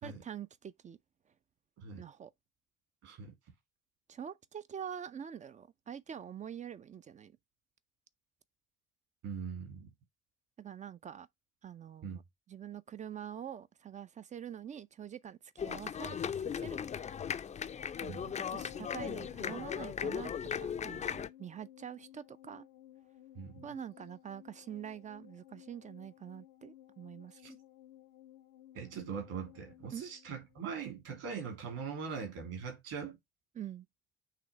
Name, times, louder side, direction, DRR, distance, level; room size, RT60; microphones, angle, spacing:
voice 1, 0.0-1.0 2.0-2.3 4.1-7.4 10.6-11.3 11.6-12.2 12.5-17.0 18.0-20.3 20.6-22.7 23.6-27.6 29.9-30.1 33.5-33.9, right 9 dB, 25° right, 0.5 m, -45 dB
voice 2, 3.0-3.3 9.2-9.9 12.0-12.2 18.1-18.3 23.3-23.7 27.4-27.5 28.7-33.2, right 6 dB, 55° right, 2.9 m, -41 dB
sound 1, 15.6-21.3, left 7 dB, 25° left, 0.5 m, -37 dB
sound 2, 18.6-31.1 31.3-31.4, left 13 dB, 65° left, 0.7 m, -57 dB
7.4 x 3.2 x 4.3 m
figure-of-eight pair, 55°, 29 cm